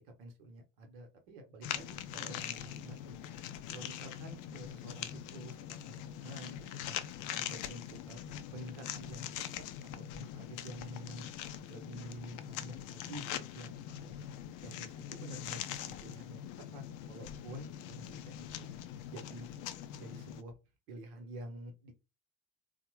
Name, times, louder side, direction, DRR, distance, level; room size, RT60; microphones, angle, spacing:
voice 1, 0.0-3.2 3.7-6.6 6.8-7.0 7.3-8.2 8.5-9.3 9.9-11.3 11.7-13.7 14.0-18.7 19.1-19.5 19.9-20.5 20.9-21.9, right 1 dB, 70° right, 5 dB, 0.9 m, -49 dB
sound 1, 1.6-20.4, left 10 dB, 50° left, 0.5 m, -43 dB
3.7 x 2.1 x 3.0 m, 0.28 s
figure-of-eight pair, 55°, 40 cm